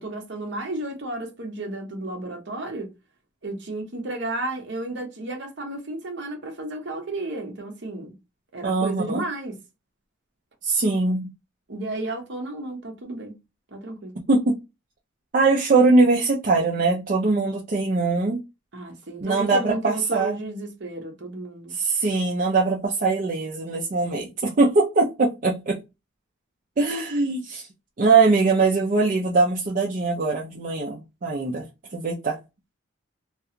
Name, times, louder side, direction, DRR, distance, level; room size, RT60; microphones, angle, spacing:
voice 1, 0.0-2.9 3.4-8.2 8.5-9.6 11.7-13.3 13.7-14.1 18.7-21.7, right 2 dB, 55° right, 0.8 m, -32 dB
voice 2, 8.6-9.2 10.6-11.3 14.3-14.5 15.3-18.4 19.2-20.4 21.7-25.8 26.8-27.7 28.0-31.6 31.9-32.4, right 3 dB, 40° right, 0.4 m, -21 dB
2.4 x 2.3 x 2.8 m
head